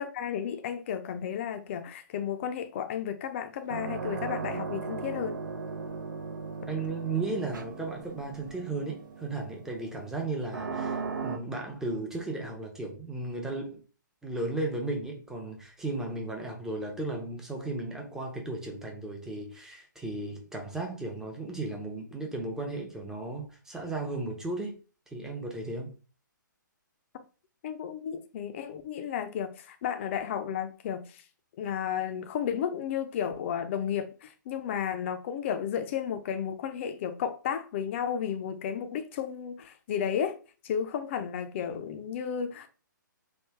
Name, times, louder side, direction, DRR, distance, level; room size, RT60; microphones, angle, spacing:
voice 1, 0.0-5.4 27.6-31.2 31.6-40.4 40.6-42.7, left 8 dB, 35° left, 0.5 m, -33 dB
sound 1, 3.6-11.4, right 5 dB, 70° right, 0.6 m, -37 dB
voice 2, 6.7-13.8 14.2-24.8 25.1-26.0, right 2 dB, 5° right, 0.6 m, -35 dB
3.2 x 2.3 x 3.3 m
figure-of-eight pair, 135°, 11 cm